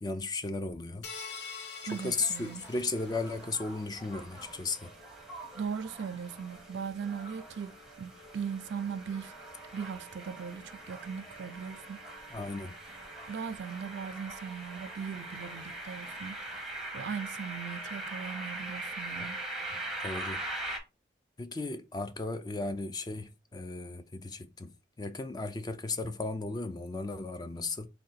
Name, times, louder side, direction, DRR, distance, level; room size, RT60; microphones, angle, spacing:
voice 1, 0.0-1.1 1.8-4.9 12.3-12.8 20.0-20.4 21.4-24.7 25.0-27.9, left 3 dB, 20° left, 0.3 m, -35 dB
sound 1, 1.0-3.5, left 5 dB, 70° left, 0.7 m, -44 dB
sound 2, 1.7-16.0, right 2 dB, 45° left, 1.7 m, -58 dB
sound 3, 1.9-20.8, right 2 dB, ahead, 0.7 m, -42 dB
voice 2, 1.9-2.6 5.5-9.3 9.7-12.0 13.3-19.4, right 6 dB, 75° right, 0.4 m, -39 dB
3.6 x 2.2 x 4.1 m
head